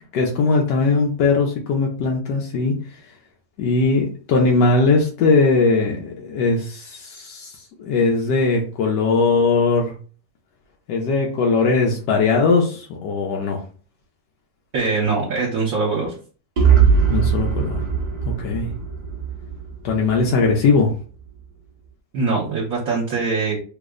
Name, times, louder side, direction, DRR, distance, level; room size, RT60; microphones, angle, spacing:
voice 1, 0.1-2.8 3.6-9.9 10.9-13.6 17.1-17.8 18.2-18.7 19.8-20.9, left 4 dB, 85° left, 0 dB, 1.3 m, -19 dB
voice 2, 14.7-16.1 22.1-23.6, right 4 dB, 60° right, -4 dB, 1.3 m, -22 dB
sound 1, 16.6-20.4, right 6 dB, 40° right, 0.6 m, -20 dB
3.2 x 2.0 x 3.6 m, 0.39 s
omnidirectional pair, 1.8 m